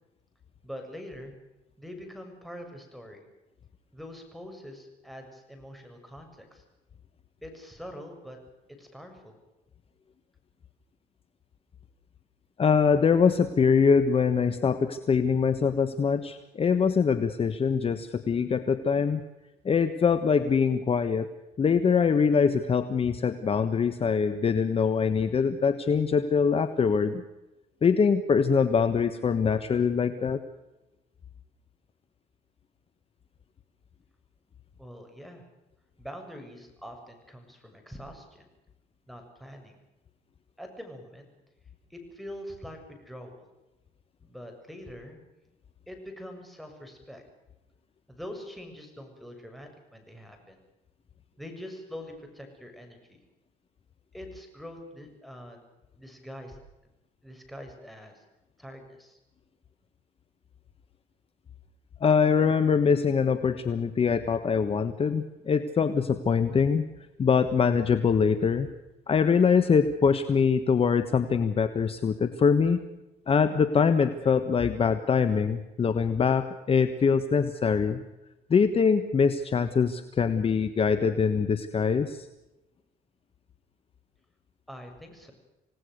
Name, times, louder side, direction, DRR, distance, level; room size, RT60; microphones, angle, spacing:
voice 1, 0.6-1.3 1.8-3.2 3.9-6.6 7.4-8.4 8.8-9.4 34.8-35.5 36.0-38.5 39.1-39.8 40.6-41.3 41.9-43.5 44.2-45.2 45.9-47.2 48.1-50.6 51.4-53.2 54.1-55.7 56.0-56.6 57.2-58.2 58.6-59.2 84.7-85.3, equal, ahead, 3 dB, 7.1 m, -44 dB
voice 2, 12.6-19.2 19.6-21.3 21.6-27.2 27.8-30.4 62.0-66.8 67.2-68.7 69.1-72.8 73.3-78.0 78.5-82.3, left 6 dB, 35° left, 10 dB, 1.4 m, -23 dB
27.5 x 18.0 x 6.7 m, 1.0 s
cardioid pair, 110°, 17 cm